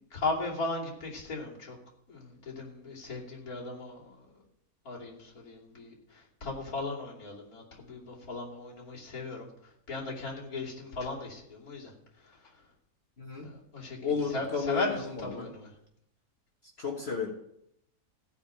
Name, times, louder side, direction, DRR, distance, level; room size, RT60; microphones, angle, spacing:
voice 1, 0.1-1.7 2.1-4.0 4.8-5.1 5.5-5.9 6.4-9.4 9.9-11.9 13.4-14.0 14.3-15.7, left 3 dB, 70° left, -5 dB, 3.4 m, -36 dB
voice 2, 14.0-15.5 16.8-17.3, left 5 dB, 45° left, 0 dB, 1.7 m, -33 dB
15.0 x 5.2 x 8.7 m, 0.76 s
omnidirectional pair, 1.6 m